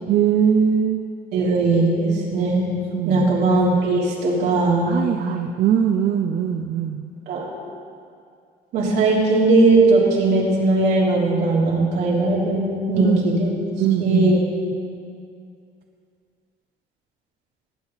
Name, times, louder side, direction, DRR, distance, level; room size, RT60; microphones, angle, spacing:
voice 1, 0.1-1.0 2.9-3.4 4.9-7.1 13.0-14.4 14.7-14.8, right 8 dB, 60° right, 5 dB, 0.6 m, -21 dB
voice 2, 1.3-2.7 3.1-4.9 7.3-7.5 8.7-13.5 14.0-14.4, right 2 dB, 85° right, -5 dB, 3.4 m, -19 dB
19.5 x 8.8 x 4.1 m, 2.4 s
cardioid pair, 110°, 17 cm